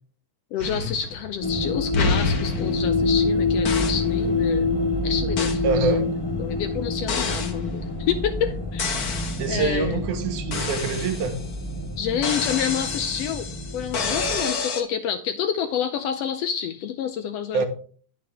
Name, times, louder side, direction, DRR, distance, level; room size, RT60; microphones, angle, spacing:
voice 1, 0.5-4.7 5.0-6.0 6.4-9.0 9.5-10.0 12.0-13.5 13.7-17.7, left 8 dB, 75° left, 1.5 m, -28 dB
Giant Kit, 0.6-1.5 1.9-3.3 3.6-4.1 5.4-5.7 7.1-7.6 8.8-9.6 10.5-11.6 12.2-14.8, left 4 dB, 60° left, 1.0 m, -29 dB
sound 1, 1.4-14.4, left 3 dB, 15° left, 1.0 m, -27 dB
voice 2, 5.6-6.1 9.4-11.4 17.5-17.7, right 4 dB, 90° right, 2.7 m, -25 dB
10.5 x 6.9 x 3.4 m
omnidirectional pair, 3.4 m